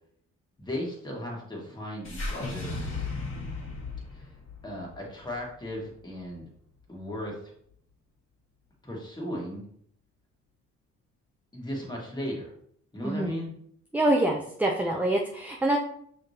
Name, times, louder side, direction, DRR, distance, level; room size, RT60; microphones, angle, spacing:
voice 1, 0.6-2.7 4.1-4.4 4.6-6.5 6.9-7.5 8.8-9.6 11.5-12.5 12.9-13.5, equal, 15° left, -2 dB, 1.6 m, -36 dB
sound 1, 2.0-6.4, left 3 dB, 40° left, 1.6 m, -36 dB
voice 2, 13.0-13.3 13.9-15.8, right 1 dB, 5° right, 1 dB, 0.4 m, -25 dB
5.6 x 3.3 x 2.7 m, 0.66 s
cardioid pair, 90°, 30 cm